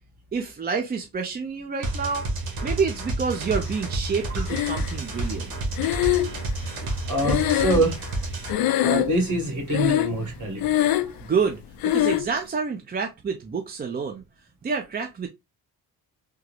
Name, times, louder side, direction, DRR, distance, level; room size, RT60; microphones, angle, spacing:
voice 1, 0.3-2.2 2.6-5.5 6.8-6.9 11.2-11.6 11.9-14.2 14.6-15.3, right 5 dB, 25° right, 0.5 m, -28 dB
sound 1, 1.8-8.5, right 2 dB, 65° right, 1.2 m, -30 dB
Breathing, 4.5-5.2 5.8-8.2 8.5-9.3 9.7-10.3 10.5-11.2 11.8-12.3, left 13 dB, 70° left, 0.5 m, -23 dB
voice 2, 7.1-8.0 8.8-10.7, right 1 dB, 50° right, 1.7 m, -25 dB
3.6 x 2.0 x 2.9 m
cardioid pair, 95°, 38 cm